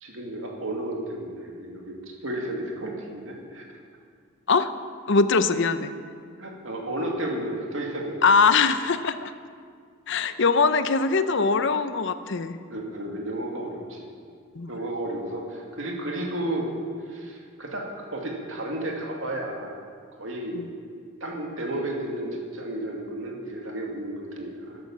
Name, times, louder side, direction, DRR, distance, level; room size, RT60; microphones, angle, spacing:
voice 1, 0.0-3.6 6.4-8.3 12.7-14.1 14.7-16.7 17.1-19.8 20.2-20.6 21.2-24.8, right 1 dB, 70° right, 0 dB, 2.4 m, -32 dB
voice 2, 5.1-5.9 8.2-9.3 10.1-12.6 14.5-14.7 20.5-20.7, left 4 dB, 60° left, 11 dB, 0.7 m, -22 dB
12.0 x 11.5 x 7.3 m, 2.1 s
head